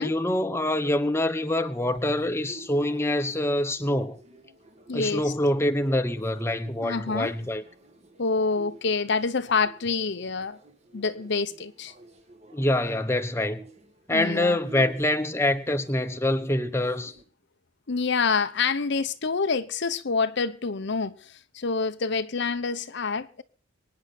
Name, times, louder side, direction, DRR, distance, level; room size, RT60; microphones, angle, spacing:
voice 1, 0.0-4.2 4.9-7.6 12.5-13.6 14.1-17.1, left 1 dB, 15° left, 1.1 m, -25 dB
sound 1, 1.7-17.2, right 2 dB, 35° right, 2.3 m, -50 dB
voice 2, 4.9-5.3 6.8-7.3 8.2-10.6 10.9-11.9 14.1-14.6 17.9-23.4, left 4 dB, 60° left, 0.8 m, -27 dB
24.0 x 9.7 x 4.3 m
head